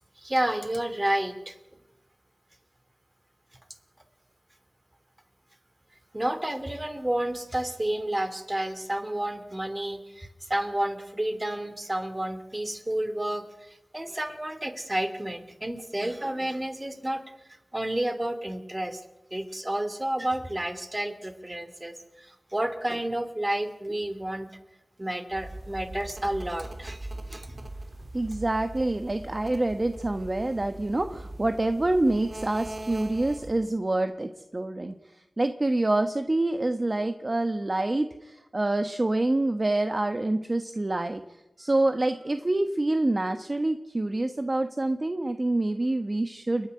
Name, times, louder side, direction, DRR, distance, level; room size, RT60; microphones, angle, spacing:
voice 1, 0.2-1.6 6.1-19.0 19.3-24.5 25.0-27.7, right 1 dB, 20° right, 9 dB, 2.7 m, -31 dB
sound 1, 25.3-33.7, right 1 dB, 55° right, 3.4 m, -41 dB
voice 2, 28.1-35.0 35.4-41.2 41.6-46.7, right 2 dB, 35° right, 8 dB, 1.2 m, -26 dB
29.5 x 10.0 x 9.9 m, 0.98 s
wide cardioid pair, 65°, 0 cm